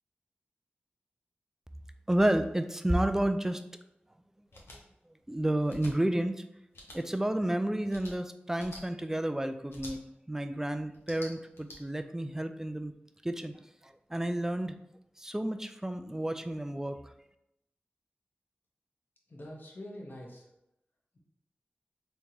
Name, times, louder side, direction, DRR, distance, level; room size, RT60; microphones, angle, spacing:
voice 1, 2.1-3.6 5.3-6.3 6.9-10.0 10.3-12.9 13.2-13.5 13.8-14.8 15.2-17.0, right 1 dB, 10° right, 9 dB, 0.3 m, -30 dB
sound 1, 4.5-4.8 5.7-5.9 6.7-7.0 7.9-8.1 8.6-8.8 9.7-9.9 10.9-11.8, left 1 dB, 85° left, 0.8 m, -47 dB
voice 2, 19.3-20.4, left 1 dB, 55° left, -1 dB, 0.9 m, -44 dB
3.6 x 3.1 x 2.8 m, 0.85 s
cardioid pair, 50°, 4 cm